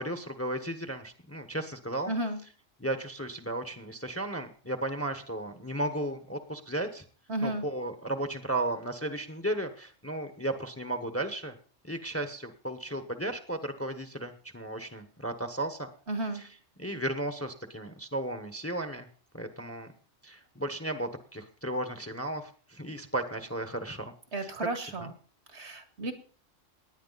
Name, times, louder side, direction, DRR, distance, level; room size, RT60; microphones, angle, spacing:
voice 1, 0.0-2.1 2.8-7.0 7.4-11.5 11.8-15.9 16.3-16.5 16.8-19.1 19.3-19.9 20.2-24.0 24.4-24.5 24.9-25.1, right 1 dB, 10° left, 8 dB, 1.1 m, -34 dB
voice 2, 2.1-2.4 7.3-7.7 16.1-16.4 24.3-25.1 25.5-26.1, right 2 dB, 60° right, 7 dB, 2.1 m, -33 dB
18.0 x 10.0 x 4.1 m, 0.42 s
omnidirectional pair, 1.3 m